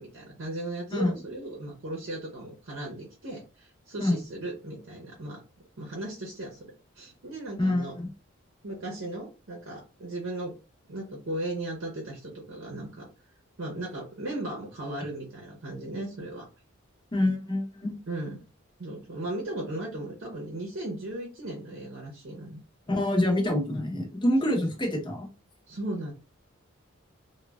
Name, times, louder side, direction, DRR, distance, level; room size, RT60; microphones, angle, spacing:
voice 1, 0.0-5.4 5.8-8.0 8.6-10.5 10.9-13.1 13.6-16.5 18.1-18.4 18.8-22.6 24.4-24.6 25.7-26.1, right 1 dB, 65° right, -1 dB, 0.7 m, -36 dB
voice 2, 7.6-8.1 17.1-17.9 22.9-25.3, left 1 dB, 20° left, 1 dB, 0.8 m, -26 dB
3.2 x 2.2 x 2.3 m, 0.31 s
head